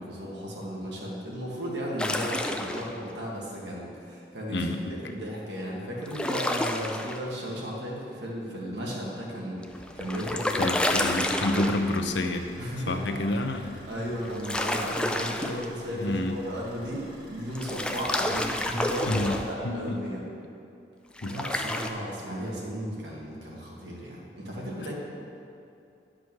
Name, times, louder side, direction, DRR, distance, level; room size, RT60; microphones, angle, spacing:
voice 1, 0.0-4.7 5.0-10.8 12.6-13.2 13.9-20.2 21.2-24.9, equal, 75° right, -4 dB, 2.1 m, -35 dB
sound 1, 2.0-2.9 6.1-7.2 9.6-12.0 14.2-15.7 17.6-19.5 21.2-21.9, left 1 dB, 5° left, 0.3 m, -30 dB
voice 2, 4.5-5.1 10.6-12.5 12.9-13.8 16.0-16.4 19.1-20.0 21.2-21.3, left 1 dB, 80° left, 6 dB, 0.7 m, -29 dB
Car / Idling, 10.7-19.5, equal, 50° right, 2.3 m, -51 dB
11.0 x 5.1 x 6.3 m, 2.6 s
head